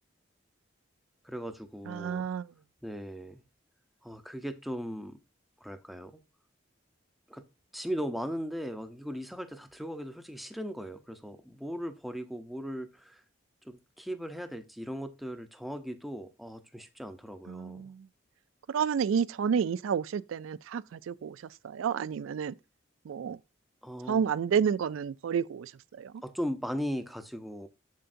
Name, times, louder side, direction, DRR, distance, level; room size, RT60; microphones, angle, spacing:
voice 1, 1.2-2.3 2.8-3.4 4.0-5.2 5.6-6.1 7.3-7.4 7.7-13.2 13.6-17.9 23.8-24.2 26.2-27.7, equal, ahead, 0.6 m, -38 dB
voice 2, 1.9-2.5 17.5-18.1 18.7-22.6 23.0-23.4 24.1-26.2, right 7 dB, 85° right, 0.3 m, -30 dB
7.4 x 6.8 x 2.6 m
head